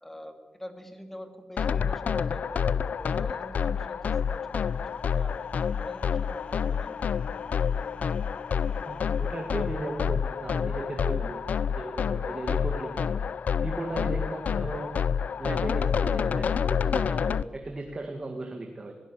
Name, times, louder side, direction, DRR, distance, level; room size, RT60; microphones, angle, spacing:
voice 1, 0.0-5.3 5.8-7.0, left 1 dB, 10° left, 7 dB, 2.4 m, -44 dB
sound 1, 1.6-17.4, left 7 dB, 75° left, 0.6 m, -28 dB
sound 2, 3.4-11.6, left 4 dB, 50° left, 1.3 m, -52 dB
voice 2, 8.9-11.4 11.7-13.2 13.6-15.0 15.4-19.0, right 2 dB, 30° right, 4 dB, 2.0 m, -36 dB
22.5 x 17.0 x 8.5 m, 1.2 s
wide cardioid pair, 155°, 3 cm